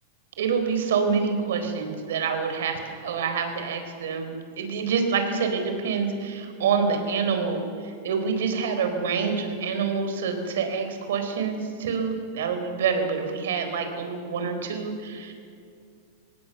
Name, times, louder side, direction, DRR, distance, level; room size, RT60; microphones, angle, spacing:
voice 1, 0.4-15.3, right 5 dB, 80° right, 6 dB, 4.4 m, -27 dB
25.5 x 18.5 x 6.8 m, 2.3 s
supercardioid pair, 160°, 0 cm